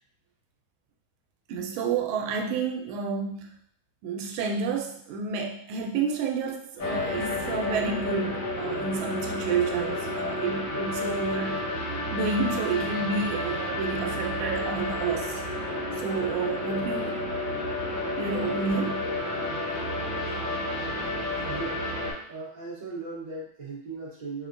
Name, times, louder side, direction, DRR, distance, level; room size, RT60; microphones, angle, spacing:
voice 1, 1.5-3.5 4.0-11.6 12.1-15.4 16.0-17.2 18.2-19.1, right 5 dB, 90° right, 2 dB, 1.4 m, -30 dB
sound 1, 6.8-22.1, left 2 dB, 75° left, 2.1 m, -31 dB
voice 2, 19.8-20.6 21.4-21.9 22.3-24.5, right 3 dB, 30° right, -7 dB, 0.9 m, -39 dB
5.0 x 2.1 x 2.5 m, 0.64 s
omnidirectional pair, 2.2 m